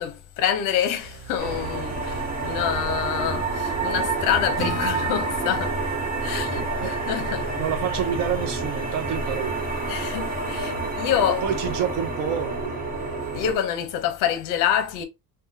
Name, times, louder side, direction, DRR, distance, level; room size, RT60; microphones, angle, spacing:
voice 1, 0.0-5.8 6.2-7.6 9.9-11.6 13.3-15.0, left 9 dB, 60° left, 0.7 m, -27 dB
sound 1, 1.0-8.6, right 7 dB, 85° right, 0.9 m, -45 dB
sound 2, 1.4-13.5, right 3 dB, 25° right, 0.8 m, -28 dB
Acoustic guitar / Strum, 4.6-8.0, equal, ahead, 0.3 m, -39 dB
voice 2, 6.2-6.9 7.6-9.7 10.5-10.9 11.4-12.7, right 8 dB, 55° right, 0.5 m, -29 dB
3.6 x 2.2 x 2.6 m
cardioid pair, 180°, 36 cm